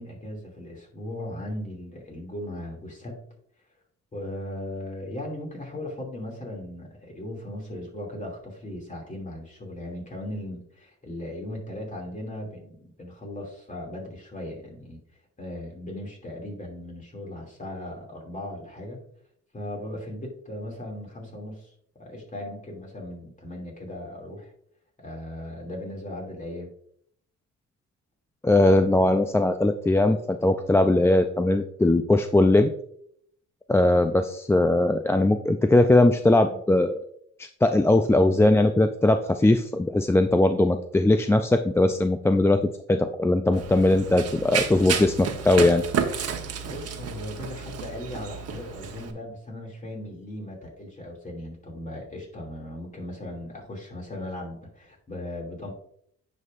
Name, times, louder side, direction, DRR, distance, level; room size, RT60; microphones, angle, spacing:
voice 1, 0.0-3.2 4.1-15.0 15.4-19.0 19.5-21.7 22.0-24.5 25.0-26.7 46.7-55.7, left 1 dB, 25° left, 0 dB, 2.6 m, -37 dB
voice 2, 28.4-32.7 33.7-37.0 37.4-42.6 42.9-45.8, left 2 dB, 10° left, 7 dB, 0.3 m, -20 dB
Run, 43.5-49.1, right 6 dB, 55° right, 1.1 m, -31 dB
9.4 x 5.4 x 2.5 m, 0.67 s
cardioid pair, 90°, 30 cm